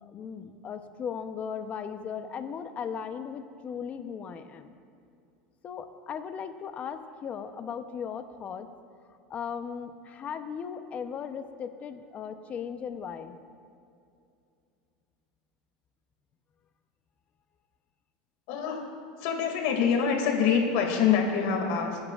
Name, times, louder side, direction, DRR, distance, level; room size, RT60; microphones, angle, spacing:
voice 1, 0.0-4.7 5.6-8.7 9.3-13.4, left 7 dB, 30° left, 9 dB, 0.8 m, -37 dB
voice 2, 18.5-18.8 19.2-22.0, left 7 dB, 65° left, 2 dB, 2.3 m, -25 dB
25.0 x 10.5 x 2.5 m, 2.5 s
supercardioid pair, 130°, 4 cm